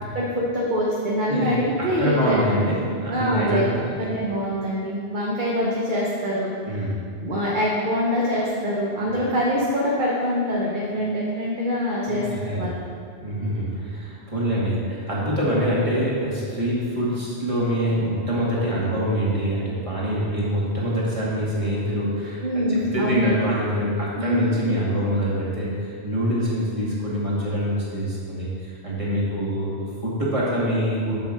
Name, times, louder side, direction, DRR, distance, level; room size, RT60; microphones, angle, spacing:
voice 1, 0.1-2.4 3.1-3.7 4.0-6.9 7.2-12.8 22.4-23.3 24.2-24.6, equal, 45° right, -4 dB, 1.1 m, -24 dB
voice 2, 1.3-1.6 2.0-3.8 6.6-6.9 12.1-12.7 13.2-22.4 22.7-31.2, equal, 30° right, -7 dB, 2.1 m, -25 dB
7.1 x 5.3 x 6.6 m, 2.3 s
omnidirectional pair, 1.2 m